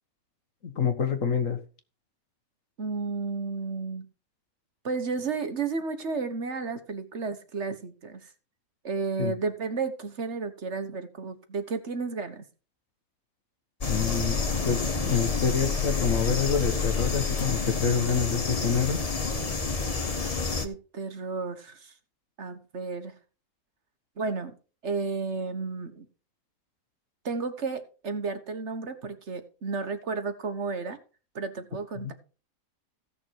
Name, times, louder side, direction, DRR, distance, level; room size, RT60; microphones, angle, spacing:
voice 1, 0.6-1.6 9.2-9.3 13.9-14.4 14.6-19.0 32.0-32.1, left 6 dB, 65° left, 1.8 m, -27 dB
voice 2, 2.8-4.1 4.8-8.3 8.8-12.4 20.4-21.9 22.4-23.1 24.2-24.5 24.8-26.1 27.2-31.0 31.3-32.1, right 4 dB, 55° right, 1.5 m, -32 dB
sound 1, 13.8-20.7, left 4 dB, 30° left, 1.1 m, -28 dB
16.0 x 6.5 x 4.6 m
omnidirectional pair, 1.5 m